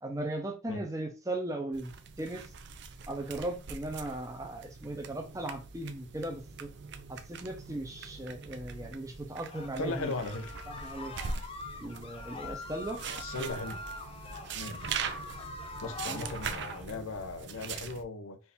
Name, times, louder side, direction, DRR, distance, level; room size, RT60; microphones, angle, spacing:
voice 1, 0.0-1.9 2.2-2.5 3.1-6.7 7.1-10.1 10.8-11.1 11.8-13.0 15.8-16.3, right 1 dB, 15° right, 0.7 m, -37 dB
sound 1, 1.7-18.0, right 5 dB, 55° right, 0.4 m, -42 dB
sound 2, 9.5-16.9, left 3 dB, 25° left, 0.4 m, -44 dB
voice 2, 9.8-10.5 13.2-13.8 14.5-14.8 15.8-18.4, left 3 dB, 90° left, 0.7 m, -37 dB
4.4 x 2.7 x 3.5 m
head